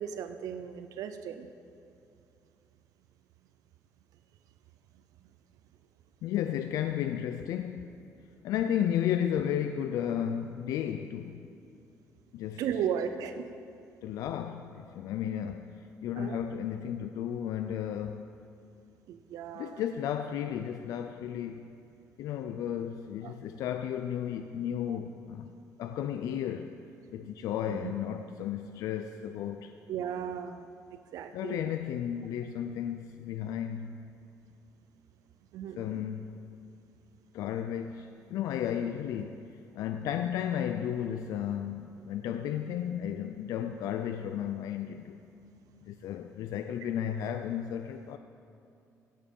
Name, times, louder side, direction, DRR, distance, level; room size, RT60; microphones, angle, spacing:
voice 1, 0.0-1.5 12.6-13.5 16.2-16.4 19.1-19.8 23.2-23.3 24.9-25.0 27.7-27.9 29.9-31.7 35.5-36.0, right 8 dB, 75° right, 9 dB, 0.5 m, -36 dB
voice 2, 6.2-8.0 8.4-11.5 12.3-12.6 14.0-18.3 19.5-21.7 22.2-25.5 25.8-26.8 27.1-29.8 31.3-34.1 35.8-36.3 37.3-45.2 45.8-48.2, left 9 dB, 80° left, 8 dB, 0.4 m, -33 dB
16.0 x 7.5 x 5.4 m, 2.6 s
cardioid pair, 140°, 6 cm